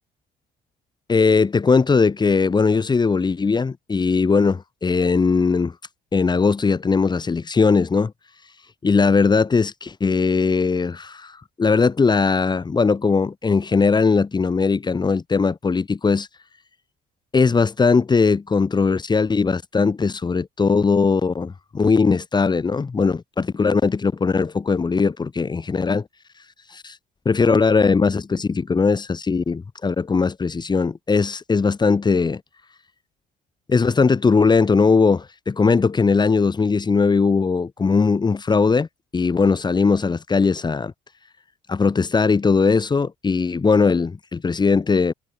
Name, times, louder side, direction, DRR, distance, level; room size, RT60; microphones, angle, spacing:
voice 1, 1.1-5.7 6.1-8.1 8.8-16.3 17.3-26.0 26.7-27.0 27.3-32.4 33.7-38.9 39.1-40.9 41.7-45.1, left 4 dB, 25° left, 3.8 m, -19 dB
cardioid pair, 110°, 17 cm